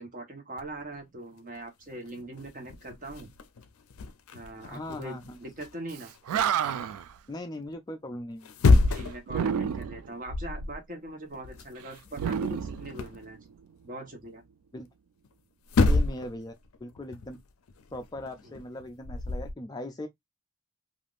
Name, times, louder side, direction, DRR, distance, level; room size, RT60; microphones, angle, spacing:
voice 1, 0.0-3.3 4.3-6.1 8.9-13.4 13.8-14.4 18.4-18.6, right 1 dB, 40° right, 1.0 m, -41 dB
sound 1, 0.6-0.9 1.5-1.6 1.9-6.2 8.3-9.3 9.7-9.9 10.2-10.8 11.0-13.2 15.2-15.3 15.7-16.4 16.6-19.5, left 3 dB, 80° left, 0.4 m, -28 dB
voice 2, 4.7-5.2 7.3-8.5 14.7-14.9 15.8-16.5 16.8-17.4 17.9-20.1, left 1 dB, 20° left, 0.3 m, -39 dB
Animal, 6.0-6.1 6.3-7.1 9.3-10.1 12.1-13.5, right 8 dB, 90° right, 0.3 m, -30 dB
3.4 x 2.4 x 2.4 m
head